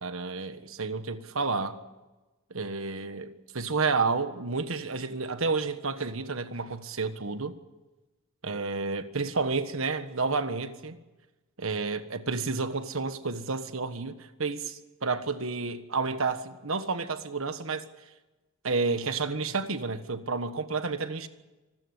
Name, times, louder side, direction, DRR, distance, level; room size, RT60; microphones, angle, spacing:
voice 1, 0.0-1.8 2.5-7.5 8.4-11.0 11.6-17.8 18.6-21.3, right 4 dB, 70° right, 1.5 m, -30 dB
26.0 x 14.0 x 9.8 m
head